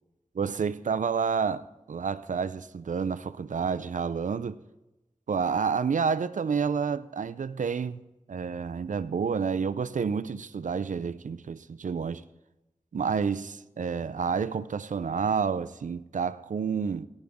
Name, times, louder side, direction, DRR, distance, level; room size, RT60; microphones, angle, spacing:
voice 1, 0.4-4.6 5.3-8.0 8.3-12.2 12.9-17.1, right 6 dB, 85° right, 0.5 m, -29 dB
18.0 x 10.0 x 3.6 m
wide cardioid pair, 65°, 13 cm